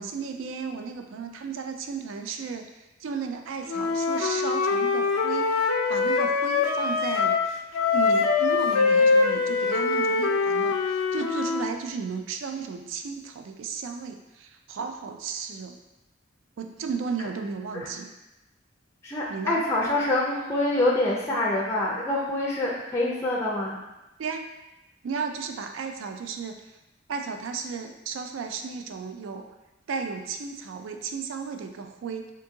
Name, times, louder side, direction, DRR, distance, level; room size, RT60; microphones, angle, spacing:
voice 1, 0.0-7.4 7.9-15.8 16.6-18.1 19.3-19.6 24.2-24.5 25.0-26.8 27.1-29.5 29.9-32.3, right 5 dB, 70° right, 5 dB, 0.3 m, -34 dB
Wind instrument woodwind instrument, 3.7-7.5 7.7-11.7, left 4 dB, 80° left, 0.4 m, -23 dB
voice 2, 19.0-23.8, left 1 dB, 15° left, -4 dB, 0.4 m, -26 dB
3.8 x 2.7 x 2.6 m, 0.97 s
head